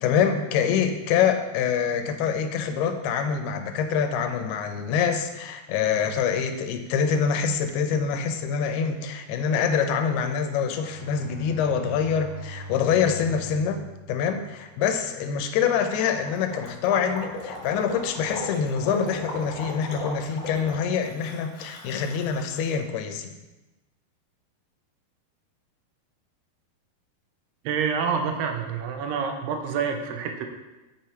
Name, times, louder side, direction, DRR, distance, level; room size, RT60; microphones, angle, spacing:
voice 1, 0.0-23.3, left 7 dB, 85° left, 7 dB, 2.7 m, -25 dB
Bowed string instrument, 10.6-14.9, right 2 dB, 50° right, 1.5 m, -42 dB
Gurgling, 15.9-22.8, left 2 dB, 55° left, 1.9 m, -37 dB
voice 2, 27.7-30.5, right 6 dB, 90° right, 4 dB, 2.8 m, -27 dB
7.7 x 5.6 x 4.4 m, 1.1 s
omnidirectional pair, 4.5 m